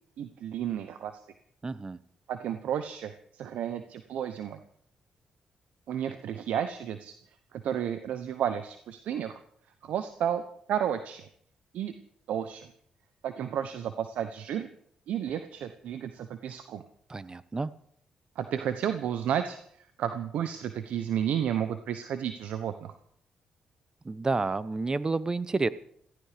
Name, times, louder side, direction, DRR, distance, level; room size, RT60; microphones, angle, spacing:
voice 1, 0.2-1.2 2.3-4.6 5.9-7.1 7.5-9.4 9.8-10.4 10.7-11.3 11.7-11.9 12.3-12.7 13.2-14.7 15.1-16.8 18.4-22.9, right 9 dB, 75° right, 9 dB, 1.0 m, -32 dB
voice 2, 1.6-2.0 17.1-17.7 24.0-25.7, right 3 dB, 30° right, 16 dB, 1.1 m, -30 dB
17.5 x 15.0 x 5.2 m, 0.66 s
supercardioid pair, 55°, 2 cm